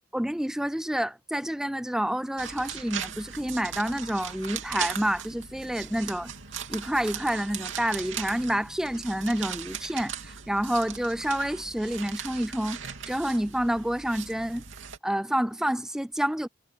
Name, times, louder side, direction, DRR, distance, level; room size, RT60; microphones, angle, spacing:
voice 1, 0.1-6.3 6.7-14.6 15.0-16.5, equal, 5° right, 0.3 m, -28 dB
sound 1, 2.4-15.0, right 8 dB, 85° right, 2.7 m, -38 dB
head